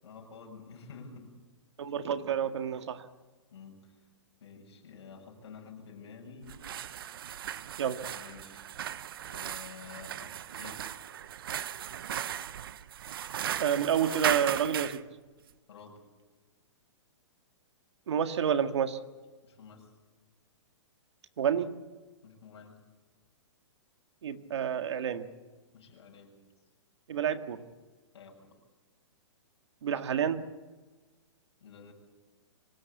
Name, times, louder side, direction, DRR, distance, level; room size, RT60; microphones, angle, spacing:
voice 1, 0.0-1.4 1.8-2.0 3.5-3.9 4.4-6.5 8.2-8.6 9.2-11.1 15.7-16.0 19.4-19.9 22.2-22.8 25.7-26.4 28.1-28.6 31.6-31.9, left 5 dB, 60° left, 1 dB, 7.2 m, -50 dB
voice 2, 1.8-3.0 7.8-8.0 13.6-15.0 18.1-19.0 21.4-21.7 24.2-25.3 27.1-27.6 29.8-30.4, right 8 dB, 65° right, 9 dB, 1.7 m, -29 dB
sound 1, 6.4-15.0, right 10 dB, 50° right, 0.7 m, -37 dB
24.5 x 18.0 x 8.4 m, 1.3 s
hypercardioid pair, 175°, 16 cm